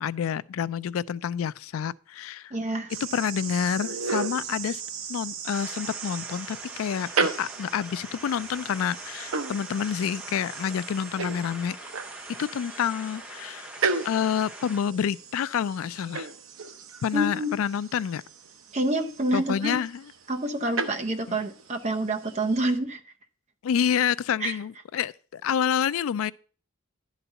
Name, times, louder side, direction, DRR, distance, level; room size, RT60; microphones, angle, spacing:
voice 1, 0.0-2.5 3.1-4.8 5.1-11.8 12.4-13.7 14.0-16.3 17.0-18.2 19.3-20.1 21.3-21.4 23.6-26.3, left 8 dB, 75° left, 0.3 m, -28 dB
voice 2, 2.5-2.9 17.1-17.6 18.7-19.8 20.3-23.0 24.4-24.6, right 1 dB, 30° right, 0.7 m, -27 dB
sound 1, 2.9-22.8, right 4 dB, 70° right, 0.8 m, -35 dB
sound 2, 5.5-14.8, right 1 dB, 5° right, 0.9 m, -43 dB
11.0 x 4.1 x 6.8 m
head